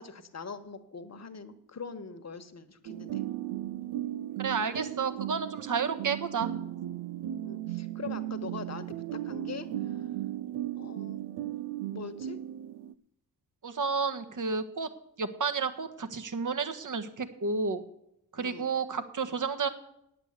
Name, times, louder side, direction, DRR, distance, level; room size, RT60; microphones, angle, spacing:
voice 1, 0.0-3.2 7.4-10.0 10.8-11.2 11.9-12.4 18.4-18.7, left 5 dB, 40° left, 9 dB, 1.5 m, -43 dB
sound 1, 2.9-12.9, right 12 dB, 80° right, 0.6 m, -36 dB
voice 2, 4.4-6.5 13.6-14.9 15.2-17.8 18.3-19.7, right 5 dB, 50° right, 9 dB, 1.5 m, -31 dB
9.0 x 8.9 x 8.1 m, 0.80 s
supercardioid pair, 50°, 41 cm